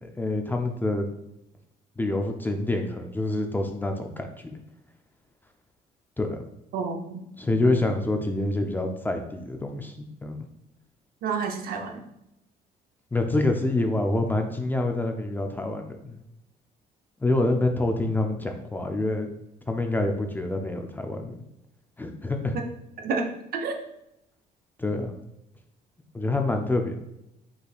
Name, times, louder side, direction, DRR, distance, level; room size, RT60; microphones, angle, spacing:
voice 1, 0.0-1.1 2.0-4.6 6.2-6.4 7.4-10.4 13.1-16.2 17.2-19.3 19.7-21.3 22.0-22.6 24.8-25.1 26.1-26.9, left 2 dB, 10° left, 4 dB, 0.5 m, -27 dB
voice 2, 6.7-7.2 7.6-7.8 11.2-12.0 22.5-22.6 23.0-23.8, right 4 dB, 65° right, 4 dB, 0.7 m, -29 dB
5.4 x 4.0 x 2.4 m, 0.84 s
cardioid pair, 110°, 17 cm